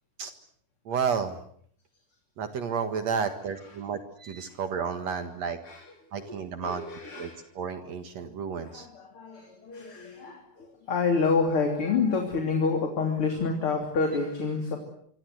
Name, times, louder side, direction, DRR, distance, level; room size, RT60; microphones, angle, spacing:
voice 1, 0.9-1.4 2.4-5.6 6.1-6.8 7.2-8.9, right 6 dB, 65° right, 8 dB, 2.9 m, -31 dB
voice 2, 6.2-7.4 8.6-14.8, left 4 dB, 45° left, 3 dB, 4.0 m, -28 dB
26.0 x 25.5 x 8.0 m, 0.65 s
omnidirectional pair, 3.4 m